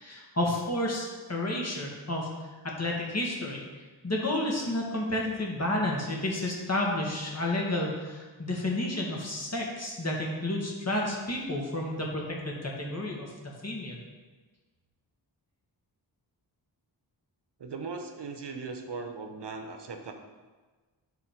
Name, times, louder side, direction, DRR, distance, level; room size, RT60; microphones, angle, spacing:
voice 1, 0.0-2.3 2.6-14.0, left 1 dB, 35° left, -2 dB, 2.1 m, -31 dB
voice 2, 17.6-20.1, right 4 dB, 65° right, 5 dB, 0.9 m, -38 dB
8.9 x 3.9 x 5.1 m, 1.3 s
cardioid pair, 55°, 45 cm